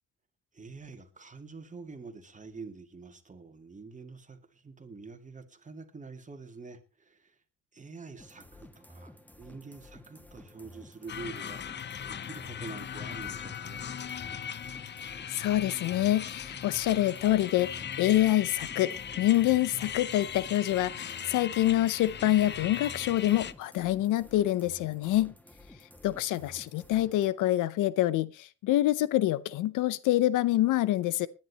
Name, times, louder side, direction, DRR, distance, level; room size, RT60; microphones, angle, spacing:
voice 1, 0.5-7.4 7.7-13.9, right 4 dB, 25° right, 2.4 m, -46 dB
sound 1, 8.2-27.3, left 1 dB, 5° left, 1.4 m, -53 dB
sound 2, 11.1-23.5, left 8 dB, 35° left, 0.6 m, -39 dB
voice 2, 15.3-25.3 26.0-31.3, left 14 dB, 85° left, 0.7 m, -26 dB
20.0 x 10.5 x 3.0 m
cardioid pair, 90°, 30 cm